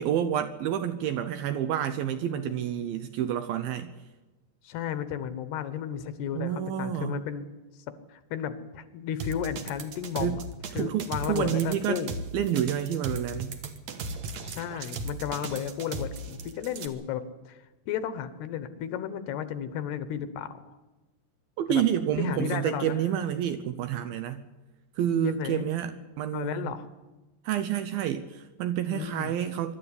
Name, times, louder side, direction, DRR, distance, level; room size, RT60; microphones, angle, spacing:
voice 1, 0.0-3.9 6.4-7.2 10.2-10.4 10.8-12.0 12.3-13.5 21.6-24.4 25.0-26.7 27.5-29.7, right 10 dB, 75° right, 10 dB, 2.3 m, -29 dB
voice 2, 2.2-2.9 4.6-7.5 8.1-10.4 10.7-12.1 14.4-17.6 17.9-20.7 21.7-21.8 22.2-23.0 25.2-25.7 26.3-26.9 28.9-29.4, left 9 dB, 75° left, 12 dB, 2.9 m, -33 dB
sound 1, 9.2-16.9, right 3 dB, 60° right, 1.9 m, -36 dB
23.5 x 12.5 x 9.9 m, 1.1 s
omnidirectional pair, 4.9 m